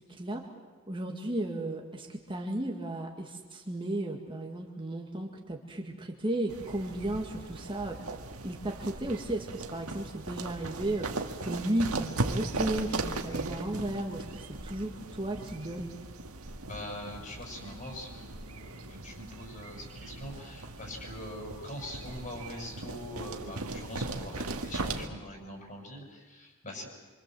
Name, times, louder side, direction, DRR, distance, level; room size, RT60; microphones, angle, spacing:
voice 1, 0.9-8.0 8.4-11.1 11.4-15.9, right 1 dB, 25° right, 1 dB, 2.0 m, -34 dB
sound 1, 6.5-25.1, right 2 dB, 75° right, 1.9 m, -38 dB
voice 2, 16.6-26.9, left 1 dB, 35° left, 1 dB, 6.8 m, -43 dB
26.5 x 25.0 x 7.8 m, 1.3 s
head